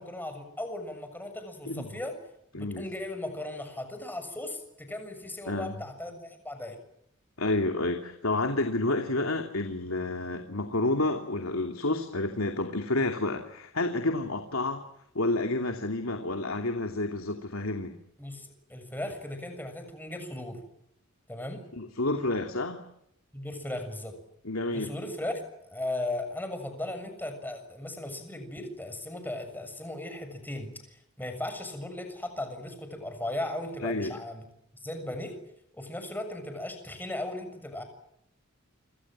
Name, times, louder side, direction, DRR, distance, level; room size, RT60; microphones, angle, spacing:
voice 1, 0.0-2.2 2.5-6.8 18.2-20.6 21.3-21.6 23.3-24.2 24.7-30.7 31.2-34.4 34.7-35.4 35.7-37.8, left 1 dB, 10° left, 7 dB, 6.8 m, -37 dB
voice 2, 2.5-2.8 5.5-5.7 7.4-14.8 15.1-17.9 21.7-22.8 24.4-24.9 33.8-34.1, left 2 dB, 80° left, 5 dB, 2.8 m, -29 dB
29.0 x 27.0 x 7.5 m, 0.77 s
head